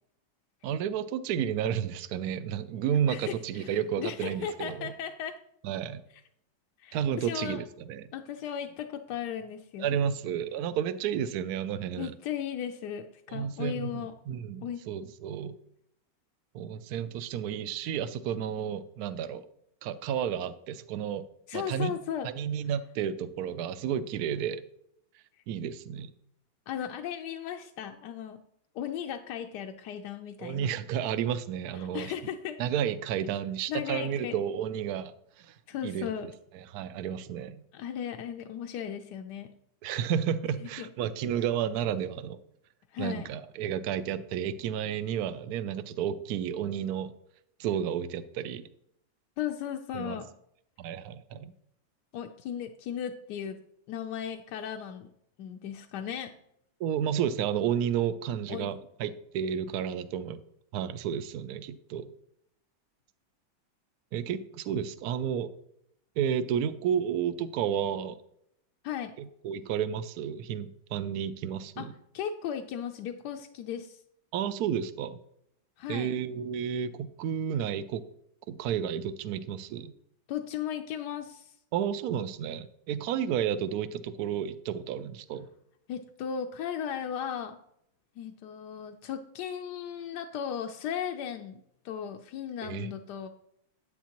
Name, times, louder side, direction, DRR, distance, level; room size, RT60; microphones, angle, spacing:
voice 1, 0.6-4.9 5.6-6.0 6.9-8.1 9.8-12.1 13.3-15.5 16.5-19.4 19.8-21.2 21.5-21.9 22.2-24.6 25.5-26.1 30.4-32.1 32.6-35.1 35.4-35.5 35.8-36.1 36.5-37.6 39.8-42.4 43.0-47.1 47.6-48.6 49.9-50.2 50.8-51.5 56.8-60.4 60.7-62.1 64.1-65.5 66.2-68.2 69.2-71.9 74.3-75.2 75.9-78.0 78.5-79.9 81.7-85.5 92.6-92.9, right 9 dB, 70° right, 13 dB, 0.9 m, -31 dB
voice 2, 3.1-5.4 6.8-7.6 8.1-10.0 12.0-14.1 14.6-14.8 21.5-22.3 26.7-28.4 28.7-30.7 31.7-32.6 33.7-34.4 35.7-36.3 37.7-39.5 40.6-40.9 42.9-43.3 49.4-50.3 52.1-53.6 53.9-55.1 55.4-56.3 58.5-58.7 68.8-69.1 71.8-71.9 72.1-74.0 75.8-76.1 80.3-81.6 85.9-87.6 88.2-93.3, left 9 dB, 70° left, 5 dB, 1.1 m, -36 dB
10.0 x 9.2 x 2.9 m, 0.73 s
omnidirectional pair, 2.1 m